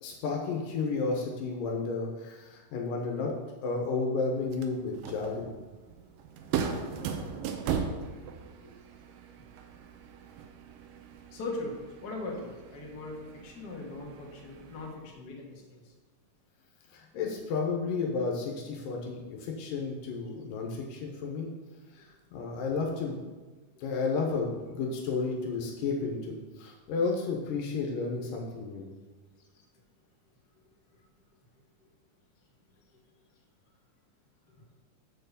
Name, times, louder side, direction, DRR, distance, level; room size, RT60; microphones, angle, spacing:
voice 1, 0.0-3.3 3.6-5.5 16.9-21.5 21.9-23.2 23.8-28.9, left 4 dB, 85° left, 0 dB, 2.5 m, -32 dB
sound 1, 4.4-14.9, right 7 dB, 85° right, 2.4 m, -38 dB
voice 2, 11.3-13.2 13.4-15.9, left 2 dB, 55° left, -1 dB, 1.1 m, -40 dB
6.5 x 4.5 x 6.7 m, 1.3 s
omnidirectional pair, 3.8 m